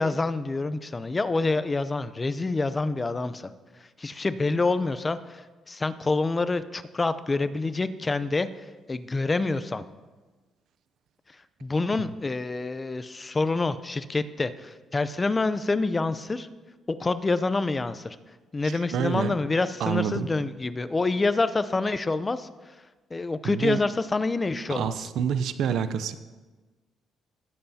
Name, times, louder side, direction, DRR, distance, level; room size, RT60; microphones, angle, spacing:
voice 1, 0.0-3.5 3.8-9.8 11.6-16.5 16.9-18.2 18.5-22.8 23.1-25.1, left 3 dB, 25° left, 13 dB, 0.6 m, -27 dB
voice 2, 18.6-19.3 19.8-20.3 23.4-23.8 24.7-26.1, right 8 dB, 75° right, 12 dB, 0.5 m, -28 dB
20.0 x 7.8 x 2.8 m, 1.3 s
cardioid pair, 90°, 0 cm